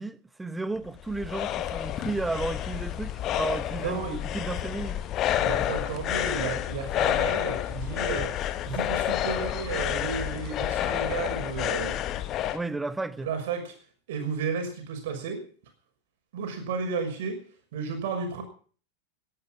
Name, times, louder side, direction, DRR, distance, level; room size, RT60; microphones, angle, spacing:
voice 1, 0.0-5.0 12.5-13.3, right 2 dB, 10° right, 0.9 m, -33 dB
sound 1, 0.8-12.6, left 12 dB, 35° left, 1.1 m, -29 dB
voice 2, 3.8-4.2 5.4-12.0 13.2-13.7 14.1-15.4 16.3-17.4 17.7-18.4, right 5 dB, 55° right, 6.1 m, -33 dB
18.0 x 11.0 x 6.1 m
figure-of-eight pair, 90°, 0 cm